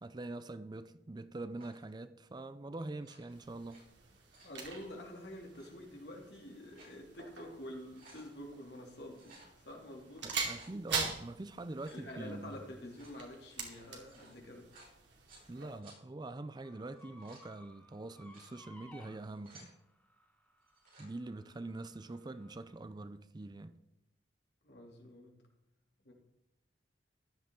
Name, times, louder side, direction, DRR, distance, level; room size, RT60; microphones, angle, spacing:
voice 1, 0.0-3.8 10.2-12.7 15.5-19.7 21.0-23.8, right 2 dB, 25° right, 0.4 m, -44 dB
sound 1, 1.6-1.9 2.9-3.8 4.1-4.6 5.4-5.7 6.4-7.0 7.4-7.5 7.8-8.3 9.1-9.5 10.2-10.7 11.7-12.1 12.8-15.5 15.8-16.0 16.9-17.5 18.1-18.5 19.1-19.7 20.6-21.1, right 2 dB, 50° right, 5.1 m, -60 dB
sound 2, 3.3-15.8, right 5 dB, 80° right, 2.5 m, -44 dB
voice 2, 4.4-9.4 9.6-10.3 11.8-14.7 24.6-25.4 26.0-26.1, left 1 dB, 65° left, 2.7 m, -48 dB
sound 3, 16.6-22.7, left 1 dB, 10° left, 1.6 m, -61 dB
14.5 x 11.0 x 3.7 m
head